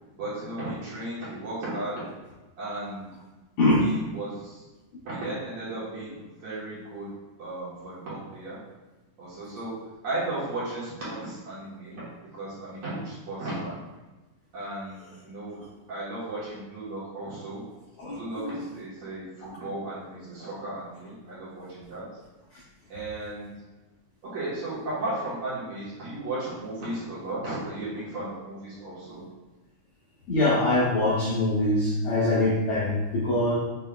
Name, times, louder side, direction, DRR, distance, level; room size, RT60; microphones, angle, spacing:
voice 1, 0.1-2.0 2.6-3.1 3.7-4.7 5.1-7.1 7.4-8.6 9.2-9.7 10.0-12.1 12.3-13.8 14.5-15.6 15.9-17.6 18.1-22.0 22.9-23.5 24.3-29.2, right 2 dB, 60° right, -10 dB, 2.1 m, -35 dB
voice 2, 18.0-18.6 30.3-33.6, left 1 dB, 85° left, -6 dB, 1.5 m, -23 dB
7.2 x 3.1 x 2.3 m, 1.1 s
omnidirectional pair, 4.2 m